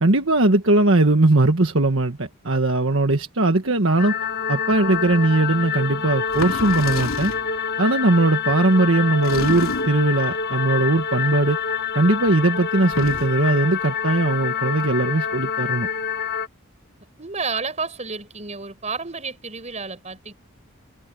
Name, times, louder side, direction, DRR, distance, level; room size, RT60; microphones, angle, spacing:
voice 1, 0.0-4.1 4.5-7.3 7.8-11.6 11.9-15.9, right 2 dB, 65° right, 1.5 m, -19 dB
sound 1, 4.0-16.5, left 7 dB, 50° left, 1.3 m, -27 dB
sound 2, 5.1-5.2 6.3-7.5 9.2-10.1 12.8-13.5, left 3 dB, 75° left, 3.1 m, -30 dB
voice 2, 17.2-20.3, right 4 dB, 30° right, 5.7 m, -30 dB
head